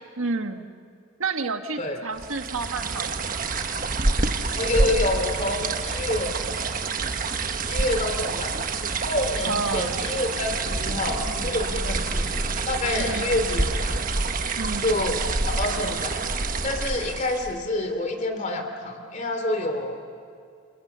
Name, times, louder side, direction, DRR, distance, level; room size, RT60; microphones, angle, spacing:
voice 1, 0.2-0.7 1.2-3.5 9.4-10.0 13.0-13.3 14.6-15.0, right 4 dB, 85° right, 6 dB, 1.5 m, -30 dB
sound 1, 2.2-17.6, right 3 dB, 40° right, 1.3 m, -27 dB
voice 2, 4.5-6.4 7.6-8.6 9.0-14.1 14.8-16.2 16.6-20.0, left 1 dB, 35° left, 6 dB, 2.9 m, -28 dB
30.0 x 27.5 x 6.8 m, 2.3 s
head